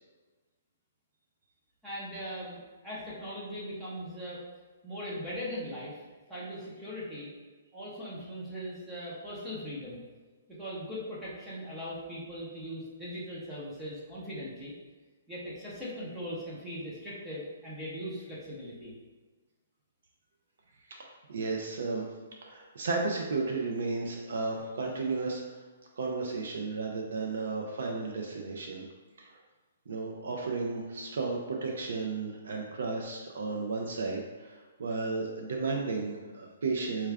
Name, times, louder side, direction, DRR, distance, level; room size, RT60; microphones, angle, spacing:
voice 1, 1.8-4.4 4.8-6.0 6.3-7.3 7.7-10.0 10.6-14.7 15.3-18.9, equal, 5° right, -8 dB, 0.7 m, -39 dB
voice 2, 20.9-22.1 22.4-25.6 26.0-28.9 29.2-29.4 29.9-37.1, right 3 dB, 65° right, 0 dB, 0.5 m, -33 dB
4.5 x 2.4 x 3.3 m, 1.3 s
hypercardioid pair, 170°, 0 cm